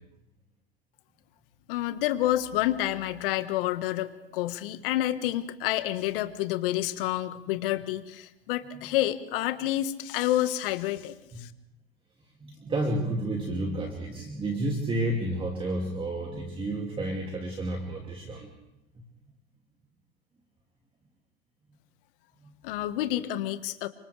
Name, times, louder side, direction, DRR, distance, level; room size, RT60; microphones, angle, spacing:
voice 1, 1.7-11.5 22.6-23.9, left 14 dB, 60° left, 10 dB, 1.6 m, -29 dB
voice 2, 12.4-18.5 22.4-22.5, right 1 dB, 15° right, 1 dB, 2.7 m, -31 dB
29.5 x 25.5 x 3.4 m, 0.86 s
hypercardioid pair, 105°, 31 cm